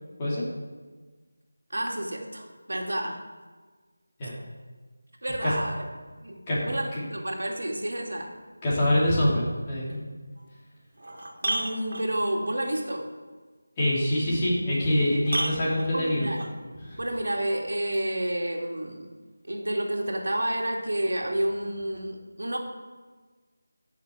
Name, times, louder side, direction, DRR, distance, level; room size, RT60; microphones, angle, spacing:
voice 1, 1.7-3.2 5.2-5.8 6.2-6.4 6.7-8.3 11.4-13.1 15.9-16.4 17.0-19.1 19.4-22.6, right 1 dB, 70° right, 1 dB, 2.2 m, -30 dB
voice 2, 8.6-10.0 13.8-16.3 16.8-17.0, left 1 dB, 20° left, -7 dB, 3.6 m, -25 dB
sound 1, 10.4-10.5 10.9-12.4 14.4-14.5 15.2-16.6 17.9-18.0, right 2 dB, 55° right, 2.5 m, -32 dB
15.5 x 6.6 x 4.9 m, 1.4 s
figure-of-eight pair, 165°, 0 cm